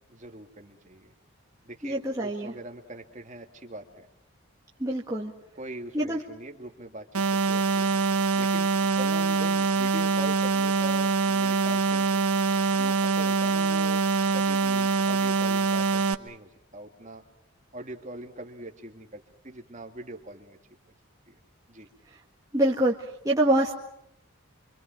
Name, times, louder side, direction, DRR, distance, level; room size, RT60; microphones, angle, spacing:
voice 1, 0.1-1.1 1.6-4.1 5.5-7.9 8.3-12.1 12.7-14.0 14.3-17.2 17.7-20.6 21.3-21.4 21.7-21.9, right 2 dB, 35° right, 4 dB, 2.2 m, -42 dB
voice 2, 1.8-2.5 4.8-5.3 5.9-6.2 22.5-22.9 23.2-23.7, right 1 dB, 15° right, -4 dB, 1.7 m, -25 dB
sound 1, 7.1-16.1, right 4 dB, 90° right, 1.3 m, -24 dB
26.5 x 25.5 x 6.0 m, 0.78 s
head